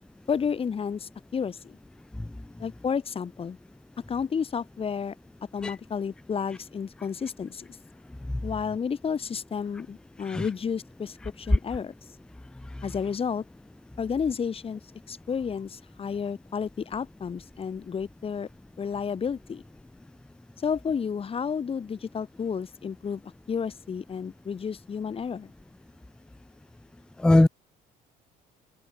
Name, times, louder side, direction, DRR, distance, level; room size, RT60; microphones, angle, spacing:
voice 1, 0.3-1.8 2.6-3.6 4.1-5.1 5.5-7.7 8.4-11.9 12.8-13.4 14.0-14.8 15.1-18.5 18.8-19.6 20.6-23.2 23.5-25.5, left 6 dB, 35° left, 2.2 m, -31 dB
voice 2, 2.2-2.3 5.6-5.7 10.2-10.5 12.8-12.9 27.2-27.5, left 1 dB, 5° left, 0.4 m, -20 dB
cardioid pair, 110°, 17 cm